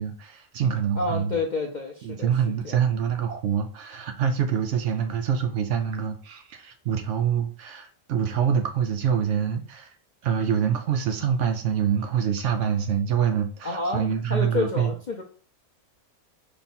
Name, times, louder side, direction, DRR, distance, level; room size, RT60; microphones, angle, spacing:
voice 1, 0.0-1.4 2.0-9.9 10.2-14.9, right 8 dB, 70° right, 6 dB, 0.8 m, -25 dB
voice 2, 1.0-2.3 2.6-2.8 13.6-15.2, left 3 dB, 50° left, 1 dB, 0.6 m, -29 dB
5.4 x 2.3 x 4.2 m, 0.40 s
omnidirectional pair, 1.5 m